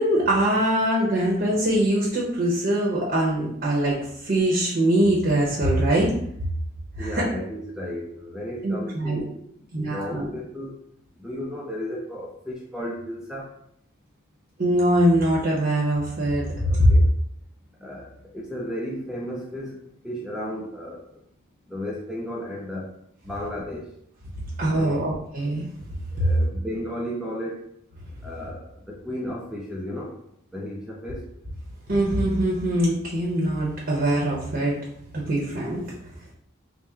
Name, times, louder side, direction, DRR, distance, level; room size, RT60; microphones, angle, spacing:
voice 1, 0.0-6.1 7.0-7.2 8.6-9.2 9.7-10.3 14.6-16.9 24.6-25.7 26.2-26.3 31.9-34.8 35.1-35.8, right 1 dB, 45° right, -4 dB, 0.8 m, -22 dB
voice 2, 7.0-9.4 9.9-10.7 11.2-13.5 16.7-17.1 17.8-19.8 20.0-21.1 21.7-22.9 23.2-23.9 24.7-25.1 26.2-27.6 28.2-30.1 30.5-31.2, equal, 5° right, -2 dB, 0.4 m, -34 dB
3.6 x 2.1 x 4.2 m, 0.72 s
head